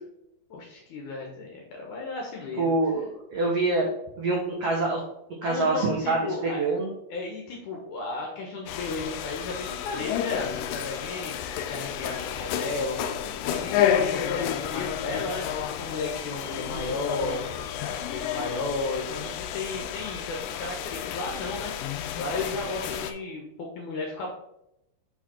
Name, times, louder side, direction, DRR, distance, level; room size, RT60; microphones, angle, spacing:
voice 1, 0.5-2.8 5.4-6.7 7.1-13.2 13.4-24.3, left 3 dB, 70° left, 0 dB, 1.9 m, -34 dB
voice 2, 2.6-3.9 4.2-5.0 5.4-6.2 6.4-6.9, right 3 dB, 90° right, -2 dB, 1.3 m, -25 dB
sound 1, 8.7-23.1, left 9 dB, 85° left, 1.9 m, -31 dB
5.9 x 4.8 x 4.3 m, 0.83 s
omnidirectional pair, 4.5 m